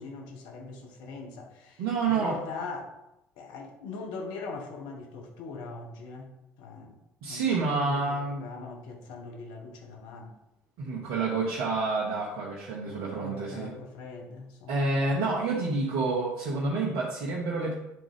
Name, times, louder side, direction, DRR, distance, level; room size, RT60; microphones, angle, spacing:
voice 1, 0.0-2.9 3.4-6.3 6.6-6.9 7.3-10.4 12.8-15.0, left 4 dB, 75° left, 2 dB, 1.1 m, -41 dB
voice 2, 1.8-2.4 7.2-8.4 10.8-13.7 14.7-17.7, right 3 dB, 75° right, -4 dB, 1.1 m, -28 dB
9.0 x 3.7 x 3.5 m, 0.91 s
hypercardioid pair, 60°, 8 cm